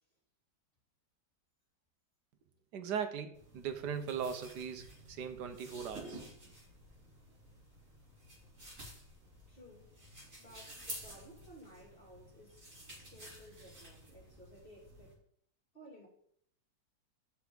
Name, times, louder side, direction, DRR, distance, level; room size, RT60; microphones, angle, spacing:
voice 1, 2.7-6.2, right 7 dB, 75° right, 1.4 m, -39 dB
sound 1, 3.3-15.1, right 1 dB, 40° right, 3.6 m, -52 dB
voice 2, 9.5-9.9 10.4-12.6 13.0-15.2 15.7-16.1, equal, 30° left, 2.9 m, -56 dB
11.5 x 4.7 x 3.9 m
omnidirectional pair, 1.9 m